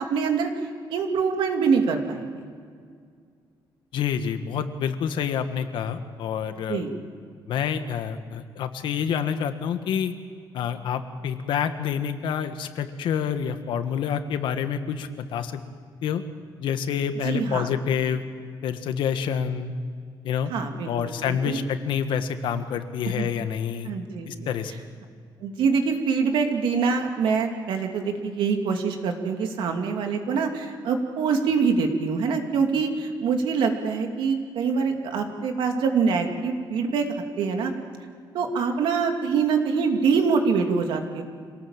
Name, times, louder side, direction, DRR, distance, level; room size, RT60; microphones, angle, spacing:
voice 1, 0.1-0.5 0.9-2.4 6.7-6.9 17.2-17.7 20.5-21.6 23.0-23.3 23.9-24.5 25.4-37.0 37.4-37.7 38.3-41.2, right 5 dB, 85° right, 4 dB, 2.6 m, -24 dB
voice 2, 3.9-6.8 7.5-10.1 10.5-15.6 16.0-16.2 16.6-18.2 18.6-19.7 20.2-20.5 20.9-23.9 24.3-24.9, left 7 dB, 80° left, 9 dB, 1.5 m, -27 dB
26.0 x 18.5 x 7.3 m, 2.1 s
cardioid pair, 160°, 8 cm